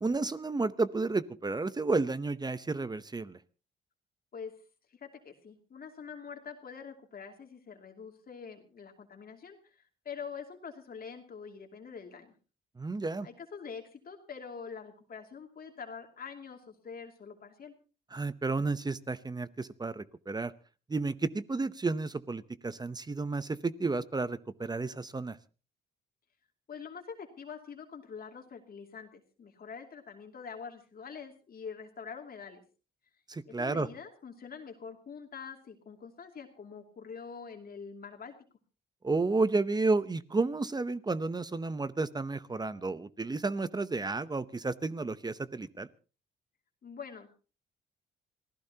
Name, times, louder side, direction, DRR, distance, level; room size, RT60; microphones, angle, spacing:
voice 1, 0.0-3.4 12.8-13.3 18.1-20.5 20.9-25.4 33.3-33.9 39.0-45.9, right 3 dB, 20° right, 15 dB, 0.8 m, -32 dB
voice 2, 4.9-12.3 13.2-17.7 26.7-32.6 33.5-38.3 46.8-47.3, left 6 dB, 50° left, 3 dB, 2.6 m, -45 dB
27.0 x 16.0 x 2.9 m, 0.35 s
cardioid pair, 90°, 20 cm